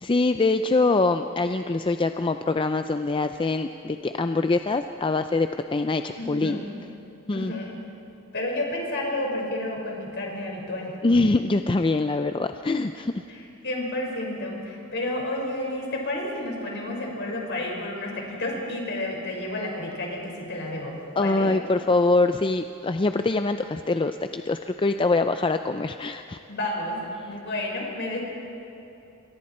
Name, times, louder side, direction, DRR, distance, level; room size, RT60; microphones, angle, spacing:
voice 1, 0.0-6.6 7.3-7.5 11.0-13.1 21.2-26.4, left 3 dB, 25° left, 8 dB, 0.5 m, -24 dB
voice 2, 6.2-6.6 7.3-7.7 8.3-10.9 13.3-21.5 26.5-28.2, left 1 dB, 55° left, -1 dB, 4.9 m, -31 dB
28.0 x 23.0 x 4.4 m, 2.9 s
head